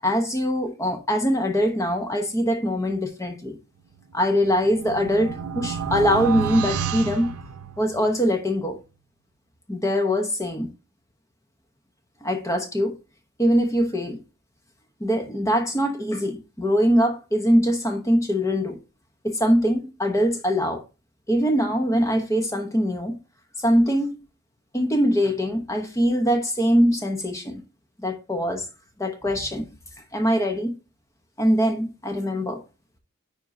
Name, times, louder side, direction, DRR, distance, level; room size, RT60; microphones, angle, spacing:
voice 1, 0.0-3.6 4.1-7.3 7.8-8.8 9.7-10.7 12.2-13.0 13.4-14.2 15.0-18.8 19.2-20.8 21.3-23.2 23.6-24.1 24.7-27.6 28.0-28.6 29.0-29.7 30.1-30.8 31.4-32.6, equal, 15° left, 0.9 m, -22 dB
sound 1, 4.2-8.2, right 7 dB, 85° right, 0.6 m, -30 dB
9.7 x 4.5 x 2.7 m
head